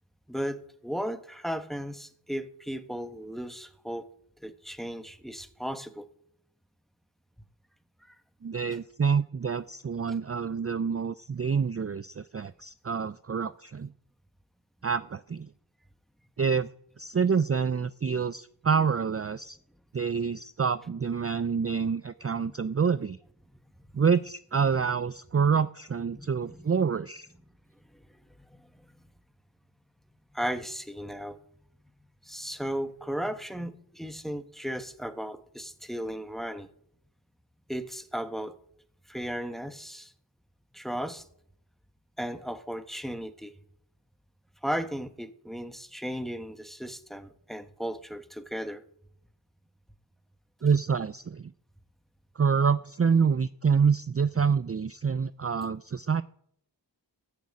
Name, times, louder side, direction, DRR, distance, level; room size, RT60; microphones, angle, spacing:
voice 1, 0.3-4.1 4.4-6.1 8.1-8.2 8.7-8.8 22.4-22.5 26.1-26.7 27.9-28.7 30.3-31.4 32.2-36.7 37.7-38.6 39.1-40.1 40.7-41.2 42.2-43.6 44.6-48.9 54.3-54.4, equal, ahead, 1.1 m, -36 dB
voice 2, 8.4-13.9 14.8-15.5 16.4-16.7 17.0-19.6 19.9-23.2 23.9-27.3 50.6-51.5 52.4-56.2, right 6 dB, 35° right, 0.4 m, -27 dB
14.0 x 6.5 x 8.5 m
wide cardioid pair, 45°, 42 cm